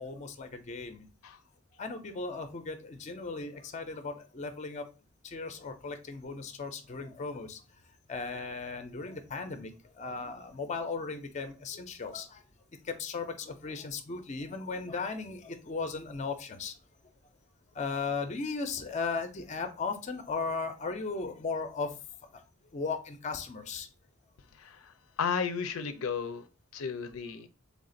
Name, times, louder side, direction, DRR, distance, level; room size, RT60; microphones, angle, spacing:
voice 1, 0.0-1.1 1.8-4.8 5.2-7.6 8.1-12.4 12.8-16.7 17.7-21.9 22.3-22.4 22.7-23.9, left 4 dB, 35° left, 7 dB, 0.5 m, -36 dB
voice 2, 24.5-26.4 26.7-27.5, left 6 dB, 90° left, 9 dB, 0.4 m, -34 dB
3.4 x 2.4 x 3.7 m, 0.32 s
head